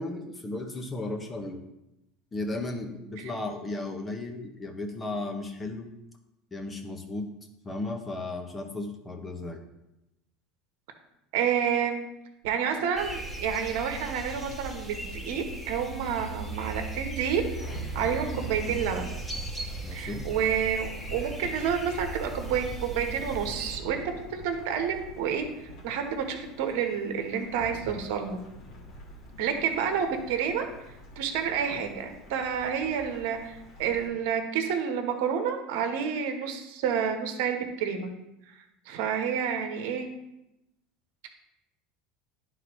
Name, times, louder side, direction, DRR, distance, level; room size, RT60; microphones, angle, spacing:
voice 1, 0.0-1.6 2.3-5.9 6.5-7.3 7.6-9.6 19.8-20.3, left 2 dB, 20° left, 4 dB, 1.2 m, -35 dB
voice 2, 11.3-12.1 12.4-17.4 17.9-19.2 19.9-28.4 29.4-30.7 31.2-38.1 38.5-40.1, right 7 dB, 70° right, 5 dB, 1.1 m, -29 dB
sound 1, 13.0-23.8, right 2 dB, 5° left, 1.7 m, -37 dB
Thunderstorm / Rain, 17.5-34.1, equal, 60° left, 1.9 m, -46 dB
11.0 x 3.9 x 3.1 m, 0.89 s
hypercardioid pair, 90°, 0 cm